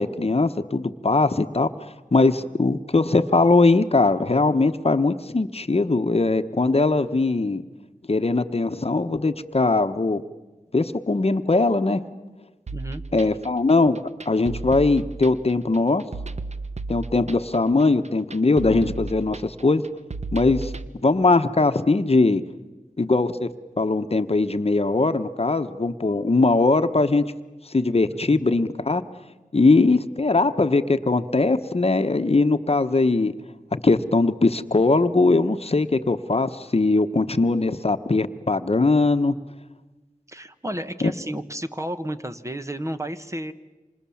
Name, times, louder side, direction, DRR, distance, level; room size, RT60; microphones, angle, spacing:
voice 1, 0.0-1.7 2.1-7.6 8.1-10.2 10.7-12.0 13.1-14.0 14.3-16.0 16.9-19.8 20.3-20.7 21.0-22.4 23.0-23.5 23.8-27.2 27.7-29.0 29.5-33.3 33.8-39.4 41.0-41.1, left 3 dB, 50° left, 9 dB, 1.0 m, -20 dB
voice 2, 12.7-13.0 28.3-28.4 31.2-31.3 40.3-43.5, right 1 dB, 20° right, 9 dB, 1.1 m, -32 dB
sound 1, 12.7-20.9, right 3 dB, 55° right, 1.1 m, -34 dB
28.0 x 26.5 x 7.2 m, 1.2 s
wide cardioid pair, 70°, 14 cm